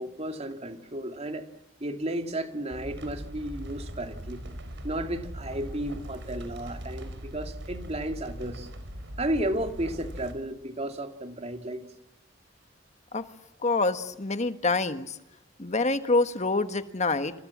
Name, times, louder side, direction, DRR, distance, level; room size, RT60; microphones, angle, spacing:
voice 1, 0.0-1.5 1.8-4.5 4.8-8.7 9.2-11.8, right 1 dB, 35° right, 2.6 m, -33 dB
sound 1, 2.7-10.3, equal, 65° right, 5.2 m, -40 dB
voice 2, 13.6-15.1 15.6-17.3, left 3 dB, 40° left, 1.5 m, -26 dB
28.0 x 27.5 x 7.4 m
head